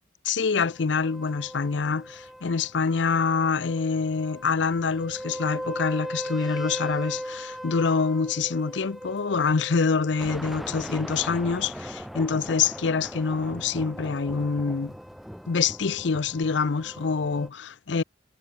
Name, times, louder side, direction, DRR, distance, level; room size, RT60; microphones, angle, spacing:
voice 1, 0.2-15.0 15.5-18.0, left 5 dB, 70° left, 0.6 m, -26 dB
sound 1, 0.6-17.5, equal, ahead, 0.3 m, -38 dB
head